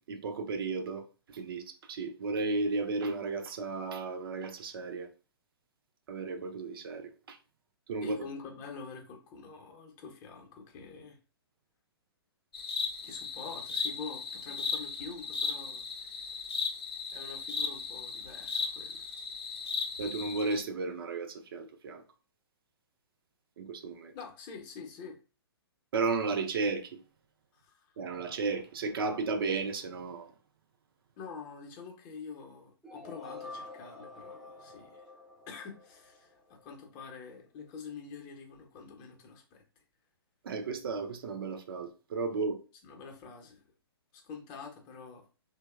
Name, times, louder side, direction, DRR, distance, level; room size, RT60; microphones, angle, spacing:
voice 1, 0.1-5.1 6.1-7.4 7.9-8.2 20.0-22.0 23.6-24.1 25.9-27.0 28.0-30.3 40.4-42.6, right 4 dB, 65° right, 0.5 m, -34 dB
voice 2, 8.0-11.2 13.0-16.4 17.1-19.1 24.1-25.2 27.5-28.0 31.2-35.1 35.5-39.6 42.8-43.6 44.1-45.3, left 5 dB, 30° left, 0.6 m, -46 dB
sound 1, 12.5-20.6, left 5 dB, 75° left, 0.5 m, -36 dB
sound 2, 32.8-36.8, left 3 dB, ahead, 0.3 m, -48 dB
2.7 x 2.0 x 2.2 m
hypercardioid pair, 125°, 13 cm